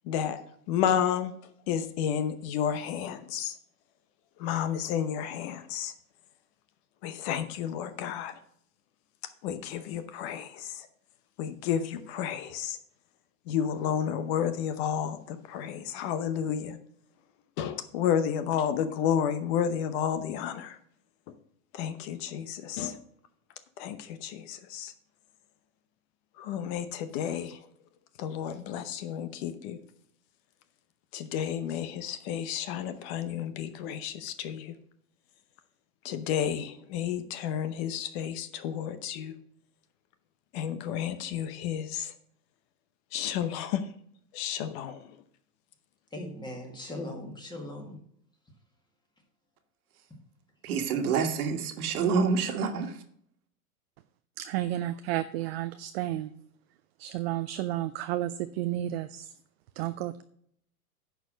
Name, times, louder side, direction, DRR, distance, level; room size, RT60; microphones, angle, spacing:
voice 1, 0.1-0.4 0.7-1.3 1.7-3.6 4.4-5.9 7.0-8.3 9.4-10.9 11.4-12.8 13.5-16.8 17.6-20.8 21.7-23.0 23.8-24.9 26.4-27.6 28.2-29.8 31.1-34.7 36.0-39.3 40.5-42.1 43.1-43.8 44.3-45.0, left 9 dB, 45° left, 11 dB, 0.9 m, -31 dB
voice 2, 46.1-48.0, left 1 dB, 10° left, 1 dB, 1.9 m, -39 dB
voice 3, 50.6-53.0, right 5 dB, 70° right, 7 dB, 1.6 m, -27 dB
voice 4, 54.4-56.3 57.0-59.2 59.8-60.2, right 14 dB, 45° right, 12 dB, 0.4 m, -32 dB
10.5 x 4.7 x 6.2 m, 0.67 s
supercardioid pair, 140°, 45 cm